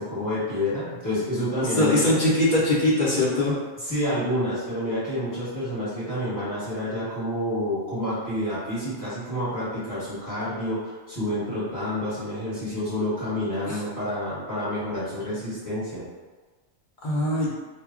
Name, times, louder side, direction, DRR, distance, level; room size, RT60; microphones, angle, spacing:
voice 1, 0.0-2.2 3.8-16.0, left 1 dB, 15° left, -11 dB, 0.9 m, -28 dB
voice 2, 1.8-3.6 13.7-13.8 17.0-17.5, left 1 dB, 50° left, -7 dB, 0.6 m, -21 dB
2.1 x 2.1 x 3.5 m, 1.3 s
omnidirectional pair, 1.3 m